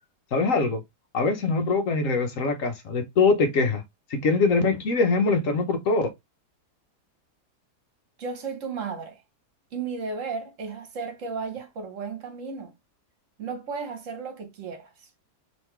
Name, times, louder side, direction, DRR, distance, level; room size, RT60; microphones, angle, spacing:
voice 1, 0.3-0.8 1.1-3.8 4.1-6.1, left 3 dB, 55° left, 1.2 m, -23 dB
voice 2, 8.2-9.2 9.7-12.7 13.4-14.9, right 5 dB, 55° right, 1.4 m, -34 dB
3.9 x 3.2 x 3.2 m
omnidirectional pair, 1.7 m